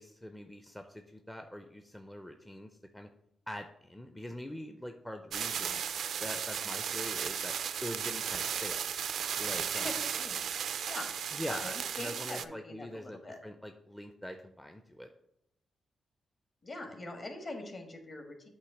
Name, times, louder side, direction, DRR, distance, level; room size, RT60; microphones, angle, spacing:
voice 1, 0.0-3.1 3.5-5.8 6.2-7.5 7.8-8.8 9.4-9.9 11.3-15.1, equal, 10° left, 5 dB, 0.5 m, -43 dB
sound 1, 5.3-12.5, right 8 dB, 75° right, 0.3 m, -35 dB
voice 2, 9.7-10.4 10.9-11.1 11.4-13.4 16.6-18.5, left 2 dB, 45° left, 4 dB, 1.5 m, -43 dB
8.3 x 2.8 x 5.9 m, 0.80 s
cardioid pair, 85°, 0 cm